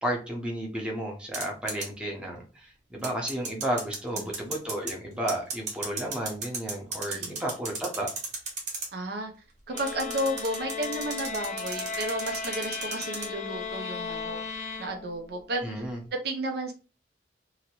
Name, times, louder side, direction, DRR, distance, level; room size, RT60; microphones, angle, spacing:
voice 1, 0.0-8.1 15.6-16.0, right 1 dB, 5° right, -1 dB, 0.8 m, -32 dB
sound 1, 1.3-1.9 3.0-4.9 5.3-8.9 9.8-13.3, right 3 dB, 40° right, 0.9 m, -34 dB
voice 2, 8.9-9.3 9.7-14.4 14.8-15.8 16.2-16.7, right 1 dB, 60° right, 3 dB, 0.6 m, -32 dB
sound 2, 9.7-15.4, left 5 dB, 40° left, 0.5 m, -36 dB
2.8 x 2.6 x 2.9 m, 0.35 s
head